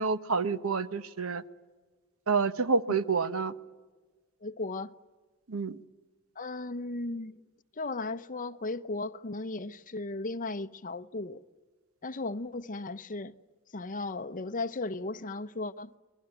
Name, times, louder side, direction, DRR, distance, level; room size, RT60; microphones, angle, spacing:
voice 1, 0.0-1.4 2.3-3.5 5.5-5.8, right 4 dB, 70° right, 1.0 m, -28 dB
voice 2, 4.4-4.9 6.4-7.4 7.8-11.4 12.0-13.3 13.7-15.9, left 2 dB, 35° left, 0.9 m, -36 dB
28.0 x 22.0 x 9.1 m
head